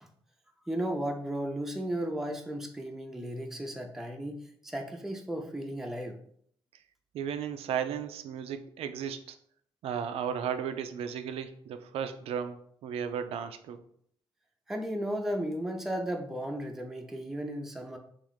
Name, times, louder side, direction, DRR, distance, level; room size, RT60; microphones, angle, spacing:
voice 1, 0.7-6.2 14.7-18.0, right 1 dB, 5° right, 2 dB, 0.5 m, -35 dB
voice 2, 7.1-9.4 9.8-13.8, right 8 dB, 80° right, 9 dB, 0.4 m, -35 dB
3.1 x 2.4 x 3.9 m, 0.65 s
cardioid pair, 75°, 10 cm